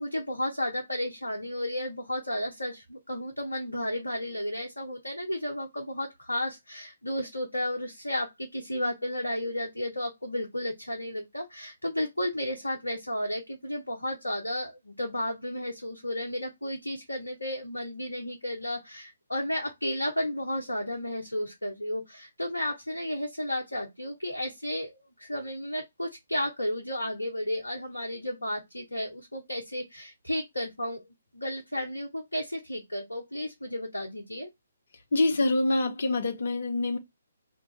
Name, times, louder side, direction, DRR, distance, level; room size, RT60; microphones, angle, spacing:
voice 1, 0.0-31.0 31.3-34.5, left 1 dB, 80° left, 0.8 m, -33 dB
voice 2, 35.1-37.0, left 2 dB, 55° left, 0.8 m, -25 dB
2.7 x 2.3 x 3.9 m
figure-of-eight pair, 135°, 0 cm